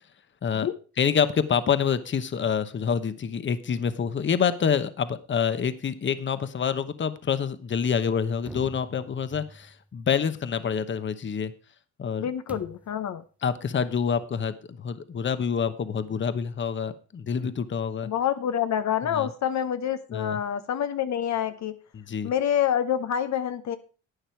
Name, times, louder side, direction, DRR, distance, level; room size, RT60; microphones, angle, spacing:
voice 1, 1.0-11.5 12.0-12.3 13.4-18.1 19.1-19.3 20.1-20.4 21.9-22.3, left 7 dB, 40° left, 12 dB, 1.0 m, -27 dB
sound 1, 8.5-9.9 12.5-13.1, right 1 dB, 5° right, 0.5 m, -44 dB
voice 2, 12.2-13.2 18.0-21.8 22.2-23.8, left 9 dB, 65° left, 9 dB, 0.9 m, -27 dB
11.5 x 9.0 x 4.6 m, 0.36 s
cardioid pair, 90°, 30 cm